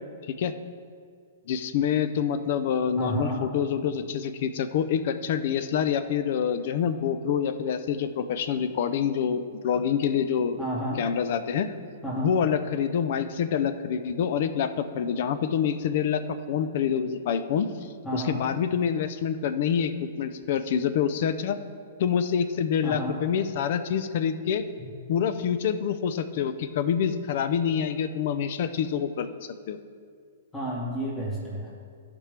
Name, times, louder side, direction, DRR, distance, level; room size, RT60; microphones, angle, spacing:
voice 1, 1.5-10.6 11.0-11.7 12.2-16.2 16.5-17.7 18.1-21.6 22.0-24.6 25.1-29.3 29.7-29.8, left 8 dB, 55° left, 11 dB, 0.5 m, -26 dB
voice 2, 3.0-3.4 10.6-11.0 12.0-12.3 18.0-18.4 22.8-23.2 30.5-31.7, right 1 dB, 15° left, -7 dB, 2.2 m, -31 dB
13.5 x 5.2 x 3.4 m, 2.1 s
hypercardioid pair, 120°, 0 cm